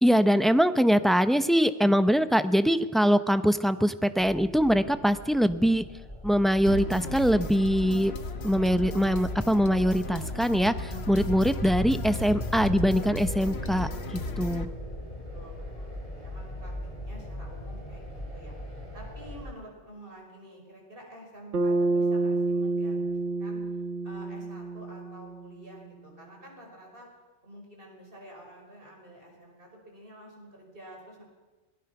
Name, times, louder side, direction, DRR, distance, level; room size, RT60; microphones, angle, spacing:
voice 1, 0.0-5.8 6.2-8.1 8.4-13.9 14.4-14.7, equal, ahead, 10 dB, 0.6 m, -23 dB
sound 1, 4.2-19.4, left 1 dB, 30° left, 4.9 m, -38 dB
sound 2, 6.7-14.7, left 3 dB, 65° left, 1.4 m, -36 dB
voice 2, 14.6-23.7 24.0-27.1 27.4-31.2, right 1 dB, 50° right, 0 dB, 5.9 m, -49 dB
Bass guitar, 21.5-25.9, right 2 dB, 80° right, 1.7 m, -29 dB
26.0 x 18.5 x 6.0 m, 1.2 s
omnidirectional pair, 1.2 m